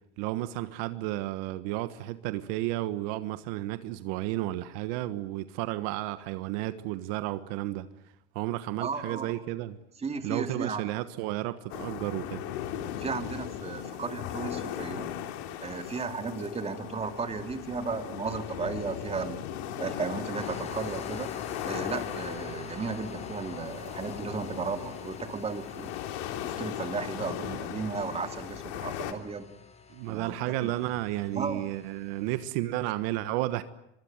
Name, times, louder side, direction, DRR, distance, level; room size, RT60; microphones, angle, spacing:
voice 1, 0.2-7.9 8.3-9.8 10.2-12.4 29.9-33.6, right 16 dB, 65° right, 1.5 m, -32 dB
voice 2, 8.8-9.4 10.0-10.9 13.0-15.2 15.6-19.4 19.8-21.3 21.6-26.0 26.4-29.5 30.1-30.7 31.3-31.7, right 4 dB, 20° right, 2.7 m, -35 dB
sound 1, 11.7-29.1, left 10 dB, 70° left, 3.3 m, -38 dB
sound 2, 20.4-32.5, left 5 dB, 20° left, 4.0 m, -47 dB
24.5 x 23.5 x 9.0 m
supercardioid pair, 130°, 34 cm